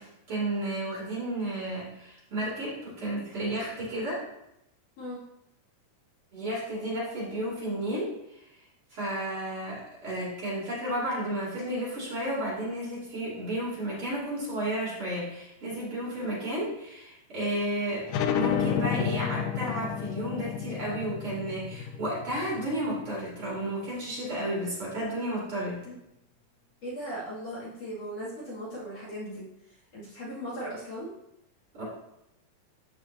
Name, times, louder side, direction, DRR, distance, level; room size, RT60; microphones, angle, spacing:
voice 1, 0.0-4.2 6.3-8.4 8.9-18.1 18.3-25.8 31.7-31.8, right 1 dB, 40° right, -7 dB, 3.6 m, -32 dB
sound 1, 18.1-23.4, left 8 dB, 80° left, 2.0 m, -31 dB
voice 2, 26.8-29.5 29.9-31.1, equal, 50° left, -7 dB, 3.2 m, -38 dB
14.0 x 5.0 x 2.7 m, 0.83 s
omnidirectional pair, 3.8 m